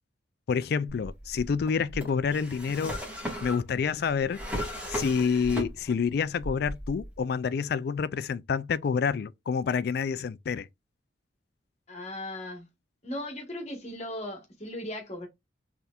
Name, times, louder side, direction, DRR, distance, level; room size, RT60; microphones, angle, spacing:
voice 1, 0.5-3.0 3.4-4.4 4.9-10.7, left 6 dB, 55° left, 0.3 m, -28 dB
Drawer open or close, 0.9-6.1 6.4-7.2, equal, 10° right, 1.5 m, -36 dB
voice 2, 11.9-12.7 13.0-15.3, left 1 dB, 35° left, 1.3 m, -37 dB
4.2 x 3.4 x 2.3 m
head